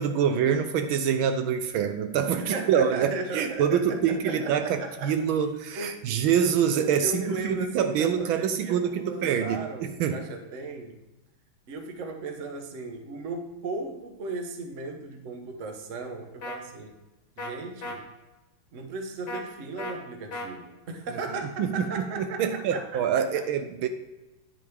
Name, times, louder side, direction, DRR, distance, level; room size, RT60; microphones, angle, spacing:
voice 1, 0.0-10.2 21.6-23.9, right 8 dB, 80° right, 8 dB, 1.4 m, -26 dB
voice 2, 2.4-5.1 5.8-6.0 6.8-11.0 11.7-16.9 17.4-18.1 18.7-23.4, right 3 dB, 45° right, 4 dB, 1.2 m, -36 dB
sound 1, 16.4-16.6 17.4-17.5 17.8-18.0 19.3-19.4 19.8-19.9 20.3-20.5, left 1 dB, 70° left, 2.3 m, -35 dB
9.8 x 7.7 x 3.5 m, 1.1 s
omnidirectional pair, 2.3 m